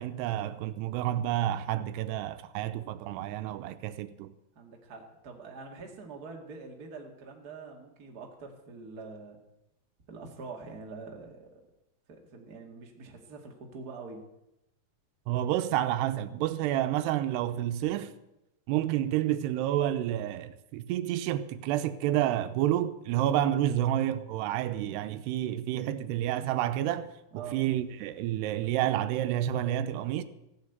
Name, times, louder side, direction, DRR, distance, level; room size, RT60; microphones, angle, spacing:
voice 1, 0.0-4.3 15.3-18.1 18.7-27.1 27.5-30.2, right 12 dB, 85° right, 2.8 m, -29 dB
voice 2, 4.5-9.4 10.1-11.6 12.1-14.2 27.3-27.6, right 4 dB, 35° right, 1.6 m, -45 dB
14.5 x 8.5 x 8.0 m
omnidirectional pair, 4.7 m